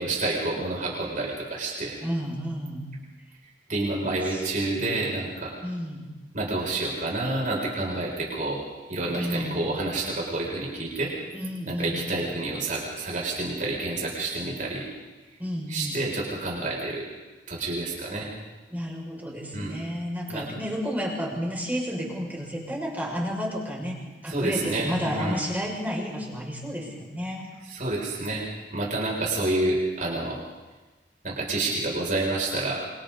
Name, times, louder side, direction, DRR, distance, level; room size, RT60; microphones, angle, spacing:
voice 1, 0.0-2.0 3.7-5.5 6.3-8.6 8.9-11.1 11.7-14.9 15.7-17.1 17.5-18.3 19.5-19.8 20.3-20.5 24.3-25.4 27.7-30.4 31.2-32.8, right 2 dB, 50° right, -3 dB, 7.0 m, -29 dB
voice 2, 2.0-2.9 4.3-4.9 5.6-6.1 9.2-9.7 11.3-12.1 15.4-16.0 18.7-24.0 24.2-27.5, equal, 10° right, -3 dB, 6.4 m, -31 dB
27.5 x 27.0 x 4.2 m, 1.2 s
head